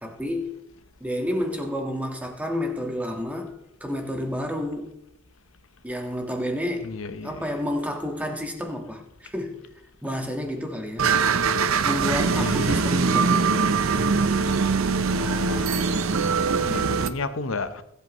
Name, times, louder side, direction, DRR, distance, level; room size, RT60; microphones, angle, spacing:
voice 1, 0.0-0.6 1.0-5.0 5.8-6.9 7.2-9.6 10.0-11.1 11.8-13.5, left 1 dB, 5° right, 1.5 m, -30 dB
voice 2, 6.8-7.6 12.3-12.8 15.2-17.8, left 3 dB, 75° left, 0.9 m, -33 dB
sound 1, 11.0-17.1, right 5 dB, 85° right, 0.7 m, -22 dB
21.0 x 8.3 x 3.1 m
head